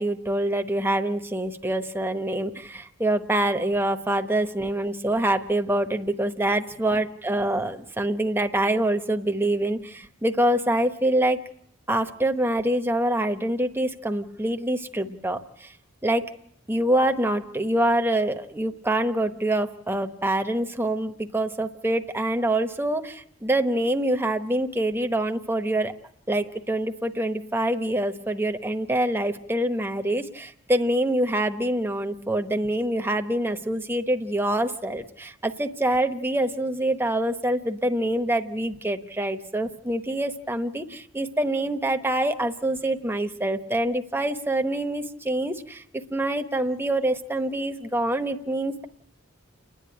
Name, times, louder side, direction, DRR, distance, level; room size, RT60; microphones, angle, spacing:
voice 1, 0.0-11.4 11.9-15.7 16.0-16.3 16.7-25.9 26.3-45.8 46.1-48.9, right 1 dB, 10° right, 6 dB, 1.0 m, -25 dB
29.5 x 10.5 x 9.9 m, 0.74 s
head